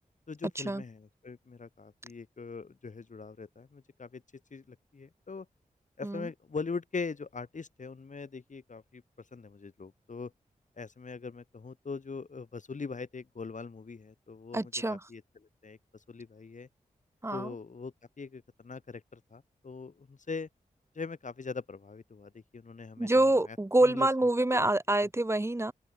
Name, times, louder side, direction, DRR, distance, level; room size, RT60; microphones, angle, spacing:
voice 1, 0.3-4.2 4.5-5.5 6.0-9.0 9.3-10.3 10.8-15.2 15.6-15.8 16.1-16.7 17.3-20.5 21.0-23.6 23.8-24.1, left 4 dB, 60° left, 2.3 m, -41 dB
voice 2, 14.5-15.0 17.2-17.5 23.0-25.7, right 1 dB, 20° right, 1.0 m, -26 dB
open air
cardioid pair, 45°, 15 cm